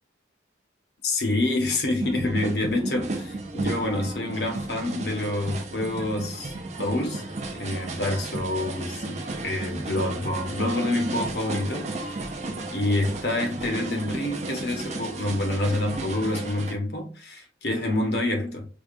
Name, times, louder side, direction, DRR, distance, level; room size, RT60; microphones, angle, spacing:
voice 1, 1.0-7.2 7.5-12.3 12.7-18.7, left 1 dB, 55° left, 1.0 m, -27 dB
sound 1, 2.0-16.7, right 2 dB, 35° right, 0.6 m, -33 dB
4.8 x 2.3 x 2.4 m
head